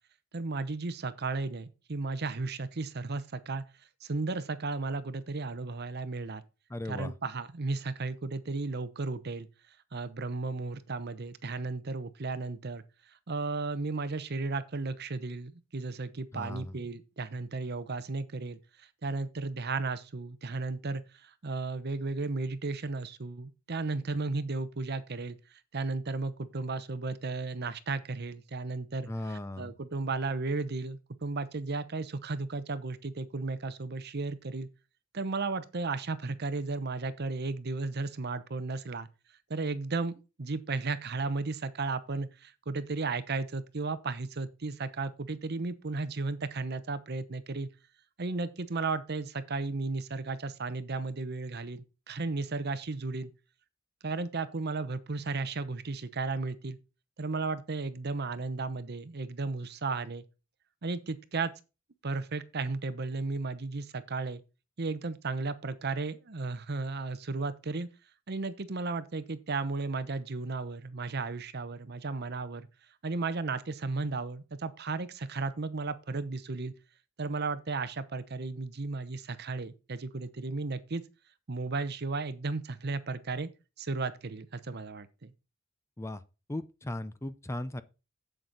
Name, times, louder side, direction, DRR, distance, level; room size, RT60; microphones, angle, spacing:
voice 1, 0.3-3.6 4.0-6.4 6.9-9.5 9.9-12.8 13.3-18.6 19.0-25.4 25.7-29.1 29.6-34.7 35.1-39.1 39.5-40.1 40.4-47.7 48.2-53.3 54.0-56.8 57.2-60.2 60.8-61.5 62.0-64.4 64.8-67.9 68.3-72.7 73.0-76.7 77.2-81.0 81.5-83.5 83.8-85.3, right 3 dB, 55° right, 0.8 m, -34 dB
voice 2, 6.7-7.1 16.3-16.7 29.1-29.7 86.0-86.2 86.5-87.8, left 1 dB, 15° left, 0.5 m, -37 dB
8.0 x 7.8 x 4.0 m
head